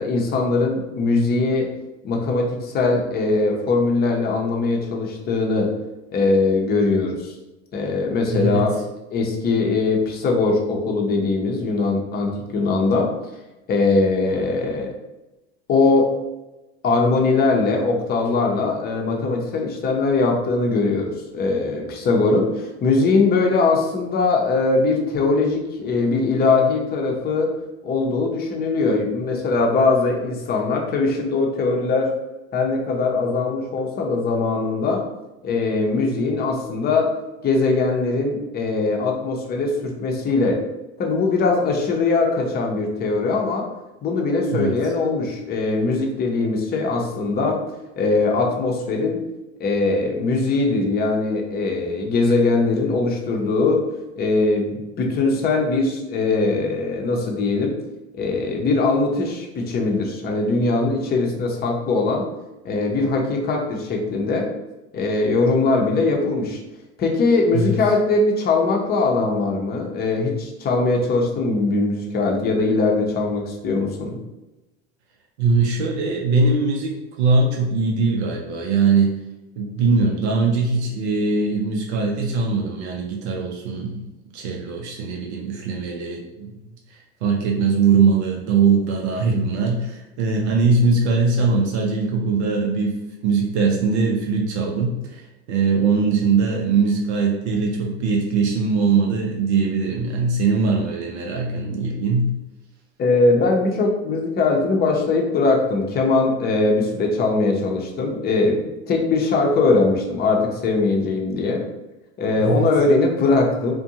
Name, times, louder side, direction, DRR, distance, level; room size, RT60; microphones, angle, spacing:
voice 1, 0.0-1.7 2.0-5.7 6.1-7.3 7.7-8.7 9.1-13.1 13.7-14.9 15.7-16.1 16.8-27.5 27.8-32.1 32.5-35.0 35.4-37.1 37.4-40.6 41.0-43.7 44.0-47.6 48.0-49.2 49.6-53.8 54.2-57.7 58.1-62.2 62.6-64.5 64.9-66.6 67.0-74.2 103.0-111.6 112.2-113.8, left 3 dB, 30° left, 1 dB, 0.6 m, -21 dB
voice 2, 75.4-76.9 77.2-79.2 79.6-84.1 84.3-86.5 87.2-93.0 93.2-95.2 95.5-102.4 112.4-112.7, right 4 dB, 80° right, 0 dB, 0.6 m, -21 dB
2.5 x 2.2 x 2.7 m, 1.0 s
hypercardioid pair, 90°, 33 cm